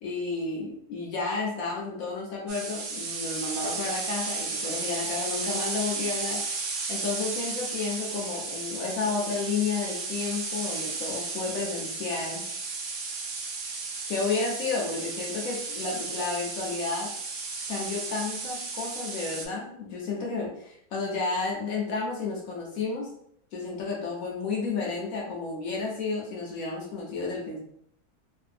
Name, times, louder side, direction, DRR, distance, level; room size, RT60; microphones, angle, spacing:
voice 1, 0.0-6.4 6.9-12.4 14.1-17.1 17.7-23.1 23.5-27.6, left 4 dB, 65° left, -2 dB, 1.0 m, -31 dB
sound 1, 2.5-19.5, right 4 dB, 70° right, 0.7 m, -34 dB
2.7 x 2.6 x 2.5 m, 0.69 s
omnidirectional pair, 1.7 m